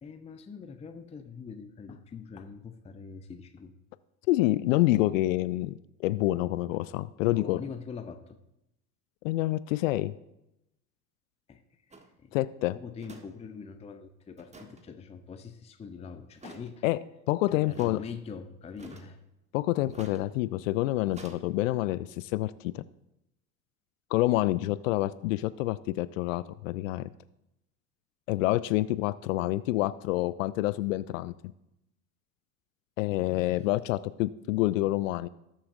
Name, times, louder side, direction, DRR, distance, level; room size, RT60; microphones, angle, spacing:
voice 1, 0.0-3.7 7.2-8.4 11.5-11.9 12.2-12.4 12.7-16.8 17.5-19.2 33.5-33.6, left 6 dB, 15° left, 8 dB, 0.6 m, -43 dB
voice 2, 4.3-7.6 9.2-10.1 12.3-12.8 16.8-17.0 17.3-18.0 19.5-22.8 24.1-27.1 28.3-31.3 33.0-35.3, left 17 dB, 55° left, 17 dB, 0.5 m, -27 dB
sound 1, 11.9-12.1 13.0-13.3 13.5-13.6 14.4-14.8 16.4-16.7 17.7-18.0 18.8-19.2 19.9-20.2 21.1-21.4, right 2 dB, 15° right, 1.3 m, -48 dB
18.5 x 7.0 x 2.6 m, 0.86 s
figure-of-eight pair, 70°, 48 cm